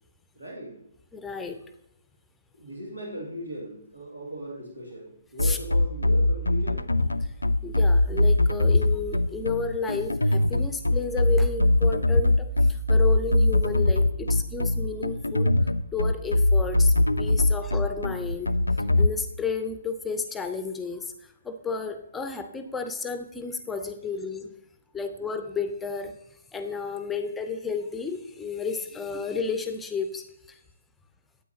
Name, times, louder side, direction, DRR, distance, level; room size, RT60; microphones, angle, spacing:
voice 1, 0.4-0.8 2.5-6.9, equal, 85° right, -3 dB, 2.1 m, -38 dB
voice 2, 1.1-1.6 5.4-5.6 7.2-7.3 7.6-15.6 15.9-18.5 19.0-24.5 24.9-26.2 26.5-30.6, left 4 dB, 10° left, 8 dB, 0.6 m, -32 dB
sound 1, 5.4-19.1, left 2 dB, 85° left, 0.3 m, -21 dB
9.2 x 8.2 x 2.8 m, 0.79 s
figure-of-eight pair, 135°, 0 cm